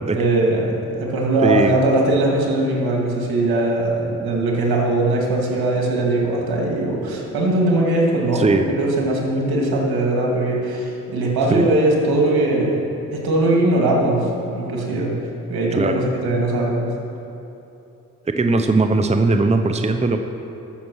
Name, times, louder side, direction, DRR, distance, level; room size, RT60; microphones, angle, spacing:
voice 1, 0.1-12.8 13.1-15.1 15.5-16.8, right 2 dB, 75° right, -1 dB, 2.4 m, -20 dB
voice 2, 1.4-1.8 8.3-8.7 11.5-11.7 15.7-16.1 18.2-20.2, right 3 dB, 20° right, 7 dB, 0.7 m, -19 dB
13.0 x 6.8 x 6.3 m, 2.9 s
supercardioid pair, 55°, 37 cm